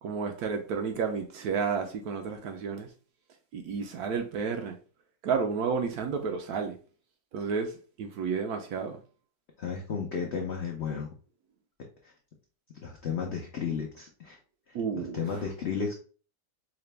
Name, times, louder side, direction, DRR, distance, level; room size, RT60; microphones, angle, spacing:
voice 1, 0.0-2.9 3.5-4.8 5.2-6.8 7.3-9.0 14.7-15.4, right 5 dB, 70° right, 0.9 m, -31 dB
voice 2, 9.6-11.1 12.0-12.1 12.8-14.4 14.7-14.8 15.1-15.9, left 6 dB, 75° left, 0.6 m, -33 dB
4.9 x 2.2 x 3.2 m
omnidirectional pair, 1.9 m